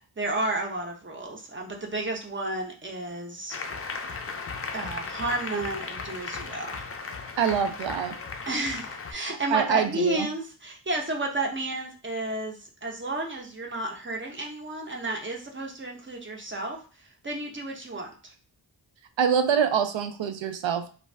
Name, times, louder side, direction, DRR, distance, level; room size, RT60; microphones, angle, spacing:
voice 1, 0.2-3.6 4.7-6.7 8.5-16.8 17.2-18.3, right 2 dB, 25° right, 1 dB, 0.6 m, -32 dB
Applause, 3.5-9.1, left 4 dB, 35° left, 0.4 m, -36 dB
voice 2, 7.4-8.2 9.5-10.3 19.2-20.9, right 7 dB, 85° right, 8 dB, 0.5 m, -25 dB
2.5 x 2.2 x 3.2 m, 0.38 s
wide cardioid pair, 90°, 44 cm